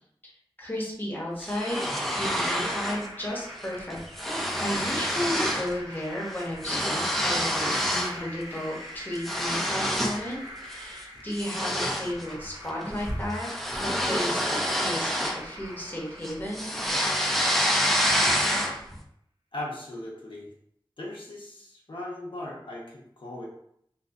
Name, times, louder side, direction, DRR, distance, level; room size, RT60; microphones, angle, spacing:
voice 1, 0.6-1.8 2.1-4.0 4.6-13.5 13.8-16.7, equal, 20° left, -4 dB, 0.8 m, -34 dB
sound 1, 1.4-3.1 3.4-3.7 3.9-5.7 6.0-8.2 8.6-10.3 10.7-10.9 11.4-15.9 16.2-18.9, equal, ahead, 0.4 m, -27 dB
sound 2, 1.6-17.5, equal, 45° right, 1.0 m, -44 dB
voice 2, 18.1-18.6 19.5-20.5 21.0-23.5, left 1 dB, 65° left, -4 dB, 0.6 m, -39 dB
2.6 x 2.4 x 2.3 m, 0.70 s
wide cardioid pair, 50°, 9 cm